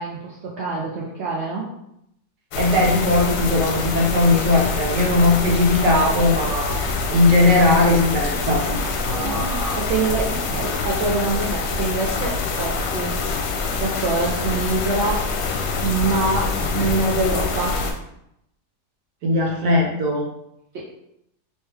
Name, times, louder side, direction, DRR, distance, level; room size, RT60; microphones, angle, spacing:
voice 1, 0.0-1.7 9.8-13.4 13.8-15.3 15.8-17.8 20.7-20.9, right 3 dB, 65° right, -4 dB, 0.6 m, -25 dB
sound 1, 2.5-17.9, left 4 dB, 75° left, 1.1 m, -25 dB
voice 2, 2.6-6.7 7.1-9.8 19.2-20.3, left 2 dB, 85° right, 0 dB, 1.5 m, -19 dB
3.2 x 3.1 x 3.2 m, 0.79 s
omnidirectional pair, 1.7 m